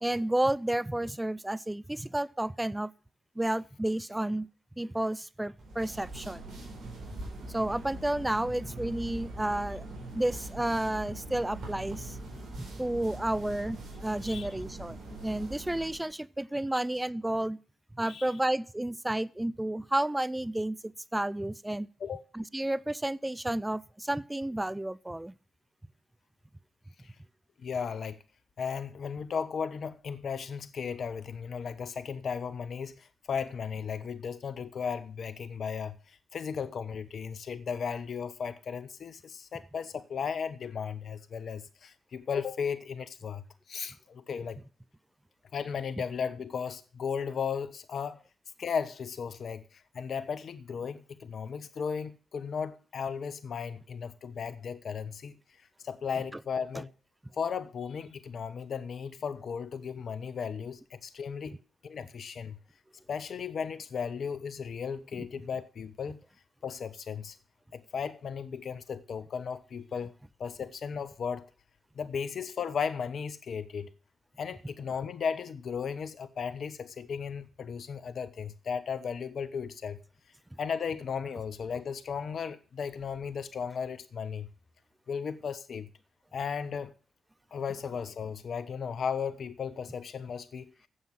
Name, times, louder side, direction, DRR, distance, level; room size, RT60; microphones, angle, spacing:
voice 1, 0.0-2.9 3.4-4.5 4.8-6.4 7.5-9.9 10.1-12.2 12.6-15.0 15.2-17.6 17.9-21.9 22.3-25.3, right 1 dB, 15° right, 0.7 m, -31 dB
sound 1, 5.6-16.1, right 1 dB, 65° right, 4.6 m, -42 dB
voice 2, 27.6-28.2 28.6-44.6 45.5-48.2 48.6-55.3 55.8-56.9 57.4-61.6 61.8-62.6 63.1-66.2 66.6-67.4 67.7-70.1 70.4-71.4 71.9-73.9 74.4-80.0 80.6-84.5 85.1-85.9 86.3-86.9 87.5-90.7, left 6 dB, 65° left, 1.0 m, -35 dB
9.7 x 7.3 x 7.6 m
hypercardioid pair, 40°, 0 cm